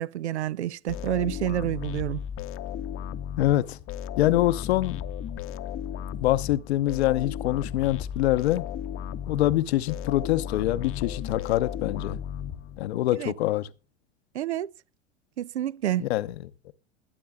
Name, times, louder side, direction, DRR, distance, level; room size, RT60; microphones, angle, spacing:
voice 1, 0.0-2.2 13.2-13.3 14.3-14.7 15.4-16.0, right 12 dB, 90° right, 0.5 m, -28 dB
sound 1, 0.9-13.1, left 9 dB, 40° left, 0.8 m, -35 dB
voice 2, 3.4-3.8 4.2-5.0 6.2-8.7 9.3-12.2 12.8-13.7 16.0-16.7, left 15 dB, 75° left, 0.8 m, -25 dB
21.0 x 8.6 x 2.3 m
hypercardioid pair, 85°, 33 cm